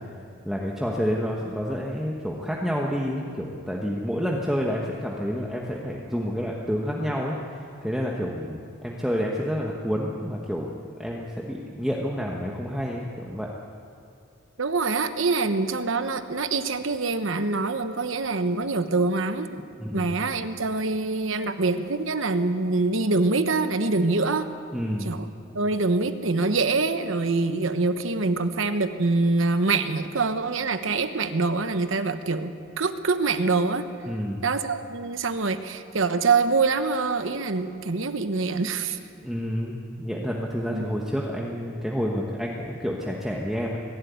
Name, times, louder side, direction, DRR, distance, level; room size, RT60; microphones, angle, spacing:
voice 1, 0.4-7.3 7.8-10.7 11.0-13.5 19.8-20.2 24.7-25.1 34.0-34.4 39.2-43.8, equal, ahead, -2 dB, 1.2 m, -29 dB
voice 2, 14.6-19.6 19.9-24.5 25.0-25.3 25.5-33.8 34.4-39.0 40.7-40.9, right 3 dB, 80° right, 9 dB, 1.1 m, -25 dB
22.0 x 12.5 x 9.5 m, 2.4 s
head